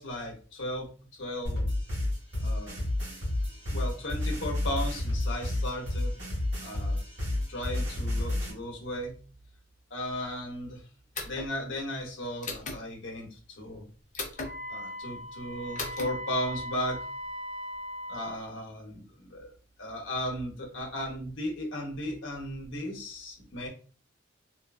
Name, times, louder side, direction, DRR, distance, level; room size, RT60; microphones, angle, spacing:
voice 1, 0.0-1.7 2.4-2.8 3.7-6.1 6.6-7.0 7.5-9.1 9.9-10.8 11.2-13.9 14.7-17.0 18.1-19.5 19.8-23.7, left 1 dB, 80° left, 1 dB, 0.9 m, -36 dB
sound 1, 1.4-8.5, left 1 dB, 80° right, 1.4 m, -30 dB
sound 2, 11.1-11.5 12.4-12.8 14.1-14.5 15.8-16.1, left 3 dB, 40° left, 0.6 m, -35 dB
Wind instrument woodwind instrument, 14.4-18.4, equal, 30° right, 0.6 m, -39 dB
3.0 x 2.4 x 2.3 m, 0.39 s
head